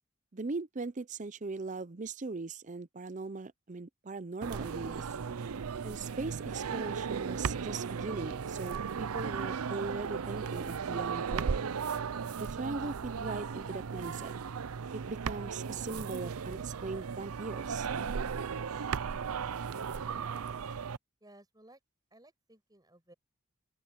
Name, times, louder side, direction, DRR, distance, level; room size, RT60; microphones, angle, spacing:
voice 1, 0.3-5.1 5.8-11.5 12.4-14.3 14.9-17.9, right 3 dB, 35° right, 0.6 m, -39 dB
sound 1, 4.4-21.0, right 6 dB, 85° right, 0.6 m, -36 dB
voice 2, 21.2-21.8 22.1-23.1, right 1 dB, 20° right, 5.5 m, -58 dB
open air
head